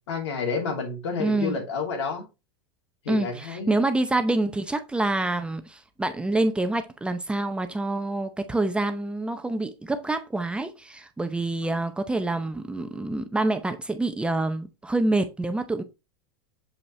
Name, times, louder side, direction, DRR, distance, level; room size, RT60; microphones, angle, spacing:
voice 1, 0.1-2.2 3.0-3.8, left 5 dB, 85° left, 2.9 m, -30 dB
voice 2, 1.2-1.6 3.1-15.8, right 2 dB, 5° right, 0.6 m, -27 dB
7.1 x 5.4 x 3.2 m
supercardioid pair, 135°, 14 cm